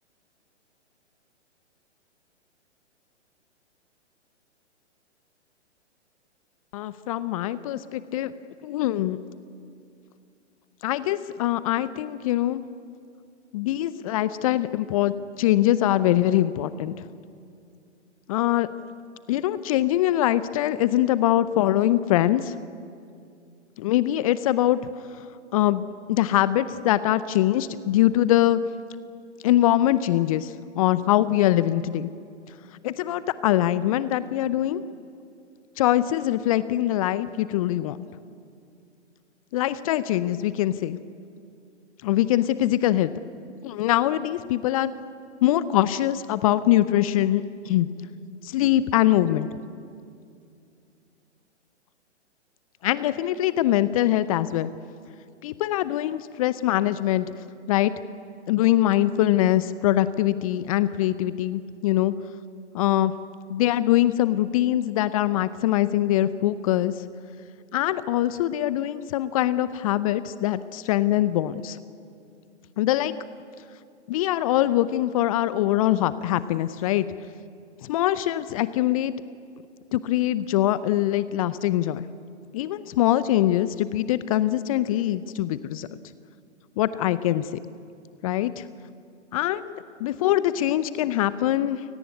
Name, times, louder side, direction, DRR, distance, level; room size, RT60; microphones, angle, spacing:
voice 1, 6.7-8.3 8.6-9.2 10.8-12.6 13.5-17.1 18.3-18.7 19.3-22.6 23.8-24.8 25.5-28.6 29.4-32.1 32.8-34.8 35.8-38.1 39.5-41.0 42.0-43.1 43.6-44.9 45.4-47.9 48.4-49.6 52.8-54.7 55.4-57.3 57.7-57.9 58.5-62.1 62.7-63.1 63.5-67.0 67.7-71.8 72.8-73.1 74.1-77.0 77.8-79.1 79.9-82.1 82.5-85.9 86.8-87.5 88.2-88.6 89.3-89.6 90.0-91.8, left 13 dB, 30° left, 15 dB, 0.7 m, -23 dB
29.5 x 18.0 x 9.7 m, 2.4 s
figure-of-eight pair, 120°, 35 cm